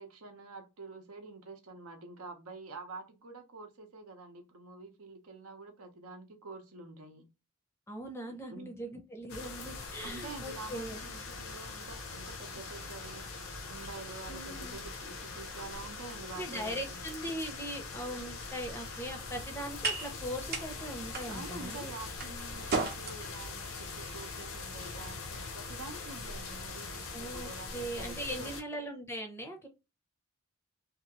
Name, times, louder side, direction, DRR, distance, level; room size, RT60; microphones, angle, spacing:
voice 1, 0.0-7.3 8.5-8.8 10.0-13.3 13.7-17.0 21.3-28.6, right 3 dB, 80° right, 0.7 m, -47 dB
voice 2, 7.9-11.0 14.3-14.8 16.3-21.9 27.1-29.7, equal, 10° left, 0.5 m, -40 dB
sound 1, 9.3-28.6, left 4 dB, 70° left, 0.6 m, -42 dB
sound 2, 18.3-26.7, right 3 dB, 45° right, 0.6 m, -41 dB
2.8 x 2.4 x 2.8 m
head